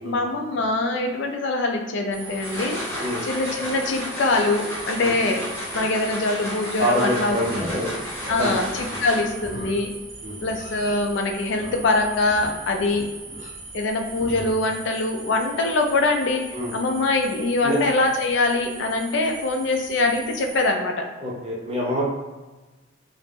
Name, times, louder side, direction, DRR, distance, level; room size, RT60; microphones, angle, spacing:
voice 1, 0.0-2.8 3.2-5.5 5.7-7.6 8.3-9.9 10.4-13.1 13.7-21.1, left 2 dB, 65° left, 3 dB, 0.4 m, -23 dB
sound 1, 2.1-20.7, right 3 dB, 80° right, 0.6 m, -41 dB
sound 2, 2.2-9.5, equal, 10° left, 0.8 m, -33 dB
voice 2, 6.8-7.9 8.4-9.0 10.2-10.4 16.5-16.7 17.6-17.8 21.2-22.0, equal, 30° right, -3 dB, 0.5 m, -26 dB
Livestock farm animals working animals, 7.2-14.6, equal, 45° left, 0.8 m, -41 dB
2.5 x 2.0 x 3.3 m, 1.2 s
head